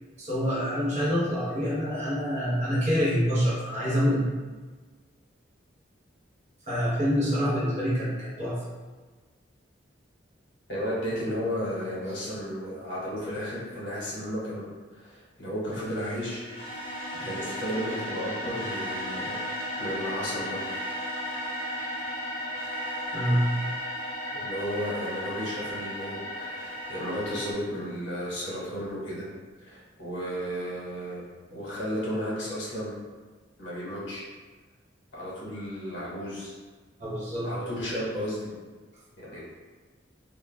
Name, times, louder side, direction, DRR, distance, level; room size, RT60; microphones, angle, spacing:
voice 1, 0.2-4.3 6.7-8.6 23.1-23.5 37.0-37.5, equal, 35° right, -8 dB, 0.8 m, -26 dB
voice 2, 10.7-14.7 14.9-16.8 17.2-19.4 19.7-20.9 24.3-29.3 29.6-31.2 31.5-32.9 33.6-34.3 35.1-36.6 37.4-38.5 39.2-39.4, equal, 70° left, -7 dB, 0.9 m, -33 dB
sound 1, 15.7-27.5, equal, 30° left, 0.5 m, -35 dB
2.3 x 2.2 x 3.1 m, 1.4 s
head